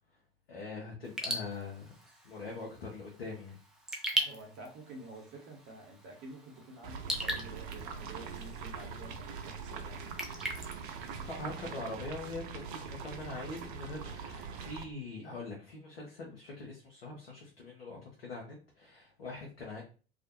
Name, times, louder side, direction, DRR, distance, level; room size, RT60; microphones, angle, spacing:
voice 1, 0.5-1.9 2.2-3.6 11.2-19.8, left 3 dB, 75° left, -2 dB, 0.7 m, -43 dB
Raindrop / Drip, 1.0-11.8, right 1 dB, ahead, 0.4 m, -41 dB
voice 2, 4.1-10.0 10.9-11.2, right 2 dB, 40° right, 1 dB, 0.8 m, -50 dB
sound 1, 6.8-14.8, right 5 dB, 55° right, 0.5 m, -42 dB
2.4 x 2.1 x 2.7 m, 0.37 s
figure-of-eight pair, 75°, 30 cm